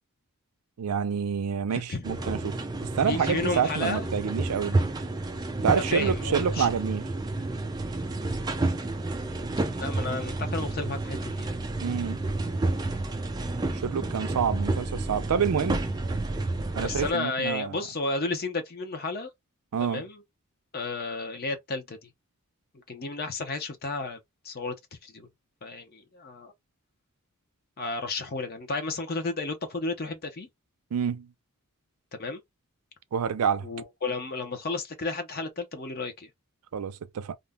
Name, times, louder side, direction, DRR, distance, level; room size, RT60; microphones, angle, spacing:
voice 1, 0.8-2.6 2.9-4.8 5.6-7.0 11.8-12.2 13.7-15.9 16.7-17.8 19.7-20.0 30.9-31.3 33.1-33.7 36.7-37.4, right 7 dB, 90° right, 0.4 m, -27 dB
voice 2, 1.7-2.0 3.0-4.1 5.7-6.7 9.8-11.5 16.8-19.3 19.9-20.2 20.7-22.1 22.9-24.2 24.4-24.7 25.0-25.3 25.6-26.5 27.8-30.5 32.2-32.4 33.6-36.3, left 3 dB, 45° left, 0.6 m, -32 dB
sound 1, 2.0-17.1, right 2 dB, 20° right, 0.3 m, -30 dB
2.5 x 2.1 x 3.4 m
head